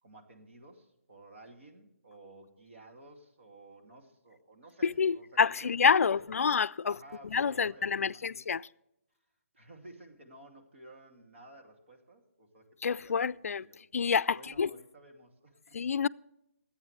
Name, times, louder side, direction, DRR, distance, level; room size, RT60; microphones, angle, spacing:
voice 1, 0.0-5.7 6.0-6.4 6.8-8.4 9.5-13.8 14.3-15.8, right 2 dB, 55° right, 2.5 m, -54 dB
voice 2, 4.8-7.0 7.2-8.7 12.8-13.7 13.9-14.7 15.7-16.1, left 6 dB, 80° left, 0.4 m, -28 dB
23.0 x 8.8 x 3.2 m
hypercardioid pair, 170°, 8 cm